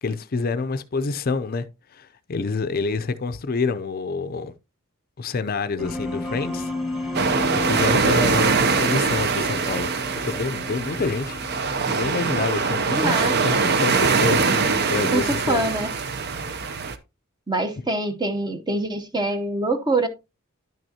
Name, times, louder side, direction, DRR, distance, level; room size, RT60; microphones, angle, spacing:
voice 1, 0.0-1.7 1.9-4.5 5.2-6.7 7.0-7.2 7.5-11.4 11.9-15.6, left 4 dB, 45° left, 0.5 m, -27 dB
sound 1, 5.8-12.8, left 2 dB, 5° right, 1.5 m, -33 dB
sound 2, 7.1-17.0, right 4 dB, 50° right, 0.7 m, -23 dB
voice 2, 12.9-13.7 15.1-15.9 17.5-20.1, right 2 dB, 20° right, 0.8 m, -25 dB
10.5 x 6.2 x 2.8 m
head